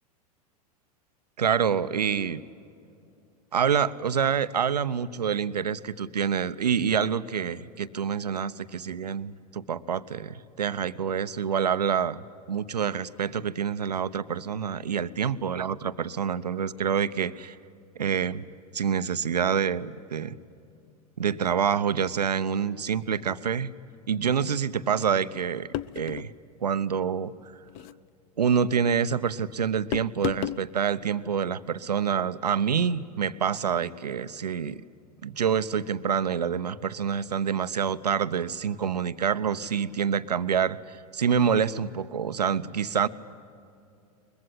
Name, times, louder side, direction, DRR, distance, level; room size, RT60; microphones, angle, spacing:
voice 1, 1.4-2.4 3.5-12.2 12.5-17.6 18.0-18.4 18.7-20.4 21.2-23.7 24.1-25.7 25.9-26.3 26.6-27.3 28.4-34.8 35.2-43.1, right 7 dB, 80° right, 14 dB, 0.8 m, -27 dB
sound 1, 25.7-26.3 27.7-28.0 29.9-30.7, left 14 dB, 45° left, 0.6 m, -32 dB
22.5 x 21.5 x 9.7 m, 2.6 s
figure-of-eight pair, 95°, 20 cm